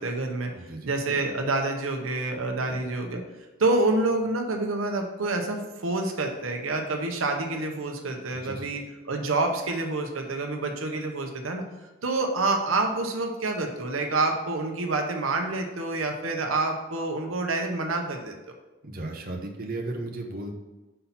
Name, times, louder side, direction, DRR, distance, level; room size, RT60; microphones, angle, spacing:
voice 1, 0.0-0.5 0.9-3.2 3.6-11.6 12.0-18.3, right 2 dB, 85° right, 3 dB, 0.8 m, -27 dB
voice 2, 0.6-0.9 2.7-2.8 8.3-8.7 18.8-20.5, right 2 dB, 45° right, 2 dB, 0.9 m, -35 dB
5.6 x 4.1 x 5.6 m, 1.1 s
head